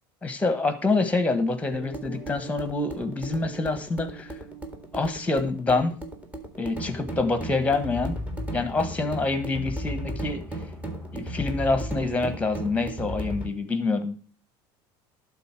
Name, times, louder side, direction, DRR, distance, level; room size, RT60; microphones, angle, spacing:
voice 1, 0.2-4.3 4.9-5.9 6.6-8.2 8.5-10.4 11.1-14.1, left 3 dB, 10° left, 10 dB, 1.4 m, -26 dB
sound 1, 1.7-13.5, right 1 dB, 10° right, 2.0 m, -36 dB
11.5 x 4.1 x 5.9 m, 0.40 s
supercardioid pair, 110°, 12 cm